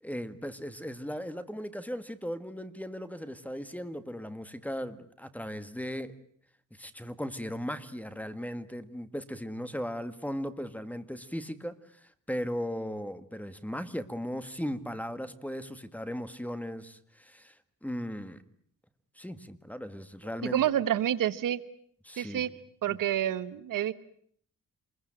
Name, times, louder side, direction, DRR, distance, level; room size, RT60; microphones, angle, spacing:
voice 1, 0.0-6.1 6.7-17.6 17.8-18.4 19.2-20.6 22.0-22.4 22.9-23.0, equal, 5° left, 12 dB, 1.9 m, -37 dB
voice 2, 20.4-21.6 22.2-22.5 22.8-23.9, right 11 dB, 80° right, 14 dB, 1.3 m, -28 dB
27.5 x 22.0 x 9.0 m, 0.62 s
cardioid pair, 100°, 32 cm